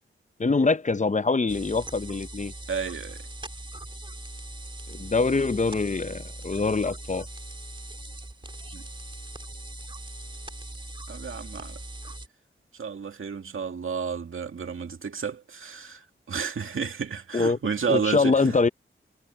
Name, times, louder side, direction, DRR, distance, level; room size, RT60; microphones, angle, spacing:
voice 1, 0.4-2.5 4.9-7.3 17.3-17.6 17.9-18.7, left 4 dB, 35° left, 0.8 m, -24 dB
sound 1, 1.5-12.3, right 2 dB, 25° right, 3.3 m, -40 dB
voice 2, 2.7-3.2 8.7-8.8 11.1-11.8 12.7-18.6, right 6 dB, 75° right, 2.2 m, -31 dB
cardioid pair, 60°, 21 cm